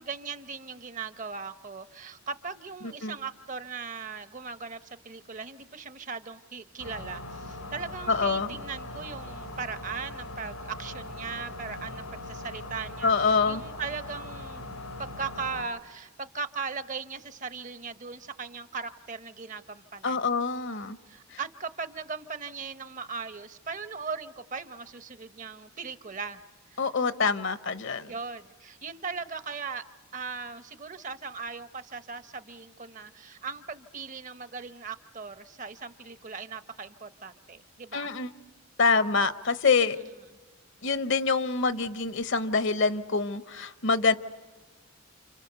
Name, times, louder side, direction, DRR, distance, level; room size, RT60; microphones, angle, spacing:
voice 1, 0.0-14.7 15.0-20.3 21.1-26.4 26.7-26.9 28.1-29.8 30.1-38.1 39.8-40.0, right 5 dB, 35° right, 12 dB, 0.8 m, -38 dB
sound 1, 6.8-15.6, left 1 dB, 90° left, 2.8 m, -40 dB
voice 2, 8.1-8.5 13.0-13.6 20.0-21.0 26.8-28.1 37.9-38.3 38.8-40.0 40.8-44.1, left 4 dB, 55° left, 13 dB, 0.8 m, -25 dB
29.5 x 27.5 x 6.8 m, 1.3 s
head